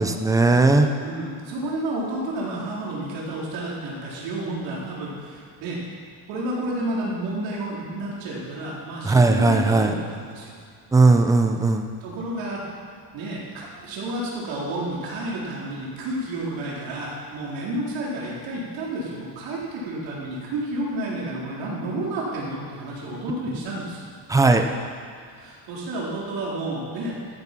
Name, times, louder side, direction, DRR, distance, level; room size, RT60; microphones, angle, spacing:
voice 1, 0.0-0.9 9.1-9.9 10.9-11.8 24.3-24.6, right 3 dB, 10° right, 5 dB, 0.3 m, -17 dB
voice 2, 1.0-5.8 6.3-10.5 12.0-12.6 13.1-24.0 25.3-27.2, right 1 dB, 80° right, -5 dB, 4.2 m, -30 dB
14.0 x 9.3 x 6.0 m, 2.2 s
cardioid pair, 175°, 44 cm